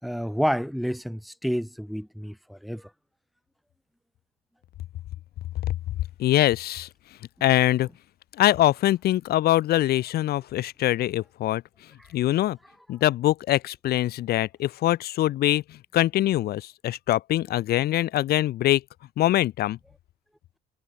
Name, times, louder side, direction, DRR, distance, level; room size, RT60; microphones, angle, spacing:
voice 1, 0.0-2.9 12.0-12.1, equal, ahead, 3.3 m, -29 dB
voice 2, 6.2-6.9 7.4-7.9 8.4-11.6 12.1-12.6 12.9-18.8 19.2-19.8, left 14 dB, 65° left, 1.3 m, -23 dB
cardioid pair, 110°, 17 cm